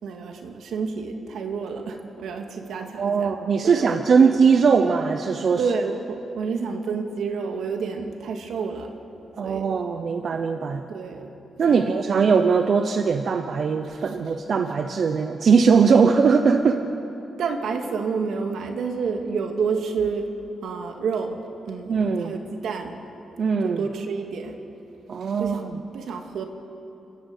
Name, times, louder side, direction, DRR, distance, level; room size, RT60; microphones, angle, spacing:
voice 1, 0.0-3.3 3.6-4.3 5.6-8.9 9.4-9.7 10.9-11.3 11.7-12.6 17.4-20.3 20.6-21.4 21.7-22.9 23.6-24.6 25.2-25.6 25.9-26.4, right 5 dB, 80° right, 4 dB, 2.1 m, -29 dB
voice 2, 2.8-5.6 9.4-10.8 11.6-16.8 21.9-22.3 23.4-23.8 25.1-25.8, right 5 dB, 50° right, 6 dB, 0.8 m, -20 dB
29.0 x 13.0 x 8.2 m, 2.9 s
wide cardioid pair, 145°, 0 cm